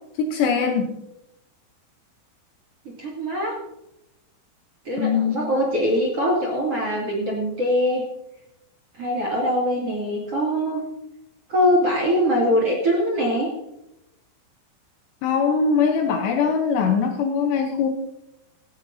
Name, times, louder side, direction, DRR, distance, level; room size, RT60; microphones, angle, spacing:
voice 1, 0.2-0.9 5.0-5.4 15.2-17.9, left 6 dB, 75° left, 4 dB, 2.8 m, -21 dB
voice 2, 3.0-3.5 4.8-8.0 8.9-10.8 11.5-13.5, equal, 40° right, -2 dB, 2.6 m, -22 dB
17.5 x 14.5 x 2.8 m, 0.86 s
omnidirectional pair, 5.8 m